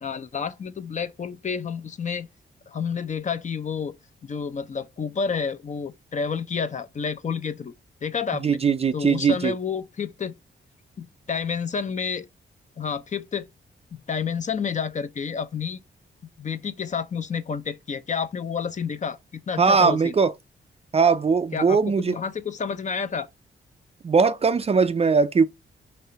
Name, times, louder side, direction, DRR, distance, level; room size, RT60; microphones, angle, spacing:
voice 1, 0.0-2.3 2.7-4.0 4.2-7.7 8.0-8.6 8.9-10.4 11.3-12.3 12.8-13.5 14.1-15.8 16.4-20.1 21.5-23.3, left 6 dB, 40° left, 0.6 m, -29 dB
voice 2, 8.4-9.5 19.6-20.3 20.9-22.1 24.0-25.5, right 5 dB, 30° right, 0.4 m, -20 dB
5.5 x 3.2 x 5.6 m
wide cardioid pair, 135°, 20 cm